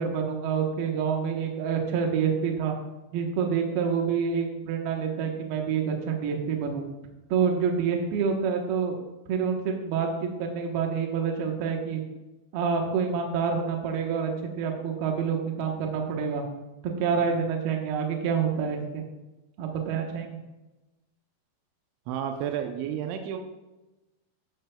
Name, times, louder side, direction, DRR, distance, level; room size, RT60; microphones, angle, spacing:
voice 1, 0.0-2.7 3.1-6.8 7.3-9.0 9.3-12.0 12.5-16.4 16.8-19.0 19.6-20.4, right 6 dB, 70° right, 2 dB, 2.9 m, -27 dB
voice 2, 22.1-23.4, right 9 dB, 85° right, 5 dB, 3.1 m, -31 dB
14.5 x 10.5 x 2.3 m, 1.1 s
omnidirectional pair, 5.2 m